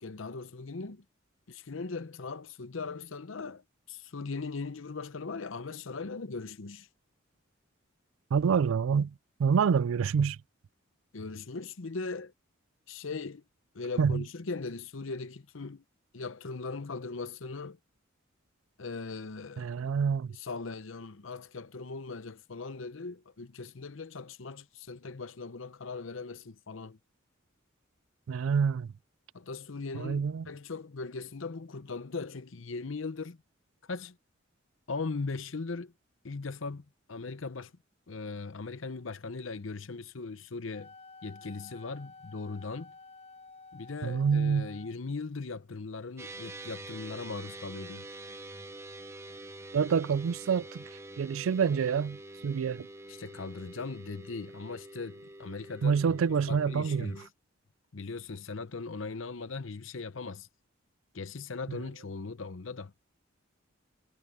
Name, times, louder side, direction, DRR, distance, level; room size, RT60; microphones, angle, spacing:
voice 1, 0.0-1.0 1.5-6.9 11.1-12.3 12.9-13.4 13.7-15.8 16.1-17.8 18.8-19.7 20.3-27.0 29.3-33.4 33.8-34.2 34.9-35.9 36.2-37.7 38.1-40.9 41.2-42.9 43.7-48.1 53.1-56.2 56.5-57.3 57.9-60.5 61.1-62.9, left 4 dB, 70° left, 0.8 m, -39 dB
voice 2, 8.3-9.1 9.4-10.4 14.0-14.2 19.6-20.3 28.3-28.9 29.9-30.5 44.0-44.7 49.7-50.8 51.2-52.9 55.8-57.1, right 6 dB, 80° right, 0.4 m, -27 dB
Wind instrument woodwind instrument, 40.7-44.9, left 4 dB, 35° left, 7.9 m, -51 dB
sound 1, 46.2-57.3, right 2 dB, 15° right, 0.8 m, -46 dB
head